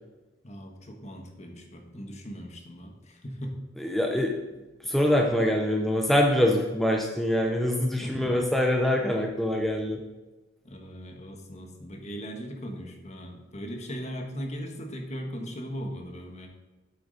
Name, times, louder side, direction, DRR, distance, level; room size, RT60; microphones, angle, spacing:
voice 1, 0.4-3.5 7.8-8.5 10.6-16.5, equal, 35° left, 3 dB, 1.3 m, -38 dB
voice 2, 3.8-4.3 4.8-10.0, left 1 dB, ahead, 1 dB, 0.6 m, -24 dB
8.3 x 8.1 x 4.0 m, 1.1 s
head